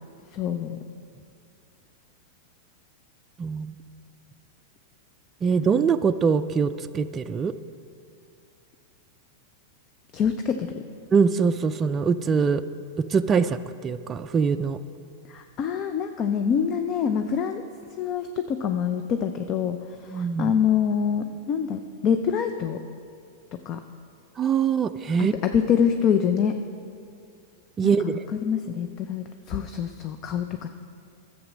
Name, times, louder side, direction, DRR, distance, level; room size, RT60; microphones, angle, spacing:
voice 1, 0.3-0.8 10.1-10.8 15.3-17.6 18.0-22.8 23.5-23.8 25.2-26.6 27.8-30.7, left 7 dB, 40° left, 7 dB, 0.5 m, -26 dB
voice 2, 5.4-7.5 11.1-12.6 13.0-14.8 20.1-20.5 24.4-25.3 27.8-28.2, right 6 dB, 25° right, 8 dB, 0.3 m, -23 dB
11.0 x 7.4 x 6.2 m, 2.4 s
hypercardioid pair, 120°, 0 cm